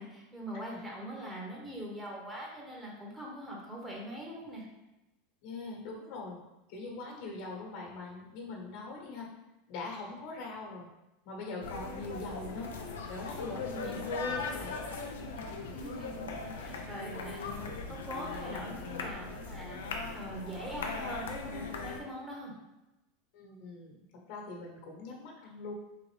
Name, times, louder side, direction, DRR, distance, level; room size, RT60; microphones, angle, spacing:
voice 1, 0.0-4.7 13.5-14.0 15.7-22.5, equal, 15° right, -3 dB, 1.1 m, -42 dB
voice 2, 5.4-6.4 6.7-9.3 9.7-10.9 11.2-14.8 15.4-15.7 23.3-25.7, left 3 dB, 60° left, -1 dB, 1.2 m, -42 dB
sound 1, 11.6-22.0, left 4 dB, 85° left, 0.5 m, -39 dB
3.8 x 2.6 x 3.3 m, 0.97 s
hypercardioid pair, 110°, 0 cm